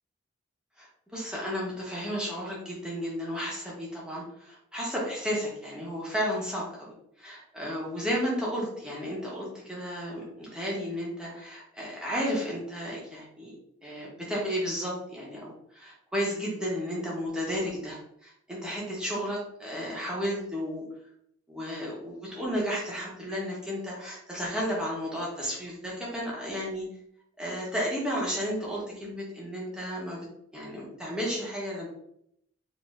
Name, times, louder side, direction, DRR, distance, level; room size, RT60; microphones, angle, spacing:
voice 1, 0.8-13.5 13.8-20.8 21.5-26.9 27.4-30.3 30.5-31.9, equal, 5° right, -5 dB, 1.1 m, -33 dB
4.4 x 2.8 x 2.5 m, 0.72 s
head